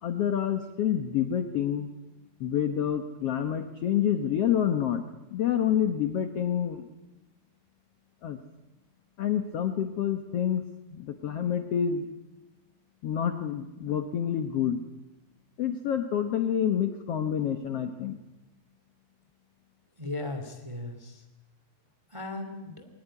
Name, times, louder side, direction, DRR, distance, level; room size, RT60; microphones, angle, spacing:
voice 1, 0.0-1.9 2.4-5.0 5.3-6.9 8.2-8.4 9.2-10.6 10.9-12.1 13.0-14.8 15.6-18.2, left 9 dB, 85° left, 7 dB, 1.3 m, -28 dB
voice 2, 20.0-21.2 22.1-22.9, left 2 dB, 15° right, 6 dB, 1.2 m, -37 dB
21.0 x 19.0 x 9.9 m, 1.0 s
omnidirectional pair, 4.5 m